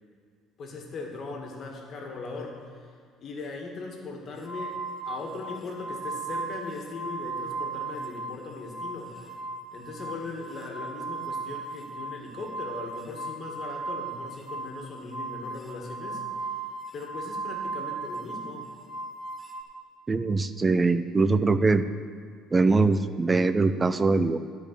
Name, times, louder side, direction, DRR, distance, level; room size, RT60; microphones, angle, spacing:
voice 1, 0.6-2.9 3.2-9.3 9.7-16.2 16.9-18.7, left 3 dB, 45° left, 1 dB, 2.0 m, -39 dB
sound 1, 4.4-8.4 8.7-19.6, right 3 dB, 10° left, 1.3 m, -36 dB
voice 2, 20.1-21.8 22.5-24.4, right 3 dB, 20° right, 12 dB, 0.5 m, -22 dB
12.0 x 5.2 x 8.4 m, 2.2 s
cardioid pair, 120°, 0 cm